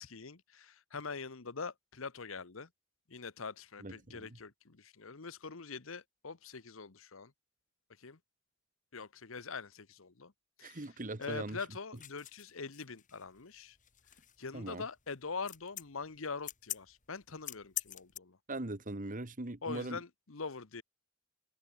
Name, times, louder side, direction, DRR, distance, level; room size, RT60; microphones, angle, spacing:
voice 1, 0.0-2.7 3.1-7.3 8.0-8.2 8.9-10.3 10.6-10.9 11.2-13.8 14.4-18.4 19.6-20.8, left 4 dB, 65° left, 1.1 m, -43 dB
voice 2, 3.8-4.3 10.6-11.6 14.5-14.8 18.5-20.0, right 2 dB, 40° right, 1.5 m, -40 dB
sound 1, 12.0-18.2, left 11 dB, 35° left, 3.0 m, -45 dB
head